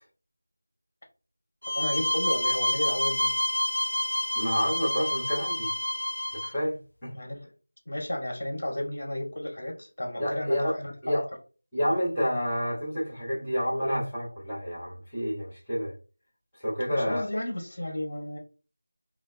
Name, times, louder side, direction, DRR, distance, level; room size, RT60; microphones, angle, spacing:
sound 1, 1.6-6.5, left 1 dB, 90° left, 0.6 m, -28 dB
voice 1, 1.7-3.3 7.1-7.5 7.8-11.2 16.9-18.4, left 1 dB, 45° left, 1.6 m, -33 dB
voice 2, 4.3-5.7 6.3-6.8 7.0-7.1 10.2-10.8 11.0-11.2 11.7-15.9 16.5-17.2, equal, 5° left, 0.8 m, -29 dB
5.1 x 2.1 x 2.4 m
figure-of-eight pair, 175°, 0 cm